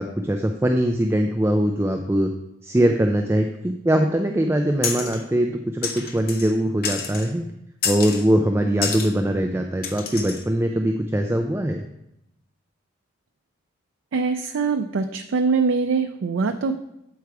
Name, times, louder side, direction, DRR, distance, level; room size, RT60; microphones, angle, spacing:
voice 1, 0.0-2.3 2.6-7.5 7.8-11.8, right 1 dB, 10° right, 4 dB, 0.3 m, -22 dB
sound 1, 4.8-5.2 5.8-6.5 6.8-7.3 7.8-8.3 8.8-9.1 9.8-10.4, left 6 dB, 50° left, 0.8 m, -29 dB
voice 2, 14.1-16.7, right 4 dB, 80° right, 7 dB, 0.4 m, -23 dB
8.1 x 4.7 x 4.7 m, 0.84 s
head